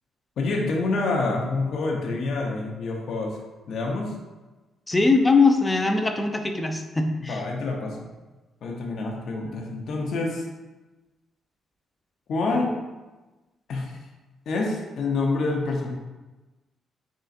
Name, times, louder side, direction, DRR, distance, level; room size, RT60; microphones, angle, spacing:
voice 1, 0.4-3.4 3.7-4.1 7.2-8.1 8.6-10.4 12.3-12.7 13.7-14.0 14.5-15.9, left 3 dB, 65° left, 0 dB, 0.8 m, -27 dB
voice 2, 4.9-7.4, left 3 dB, 15° left, 5 dB, 0.5 m, -21 dB
4.0 x 3.7 x 2.5 m, 1.2 s
cardioid pair, 75°, 0 cm